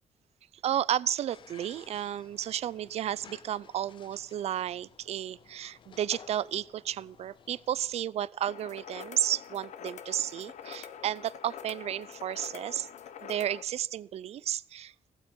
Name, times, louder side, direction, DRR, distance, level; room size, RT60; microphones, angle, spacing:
voice 1, 0.6-12.9 13.2-15.1, right 11 dB, 60° right, 22 dB, 0.4 m, -32 dB
sound 1, 1.3-8.0, left 8 dB, 45° left, 0.4 m, -55 dB
sound 2, 8.5-13.6, left 8 dB, 75° left, 1.0 m, -45 dB
15.5 x 8.2 x 5.4 m, 0.66 s
cardioid pair, 140°, 12 cm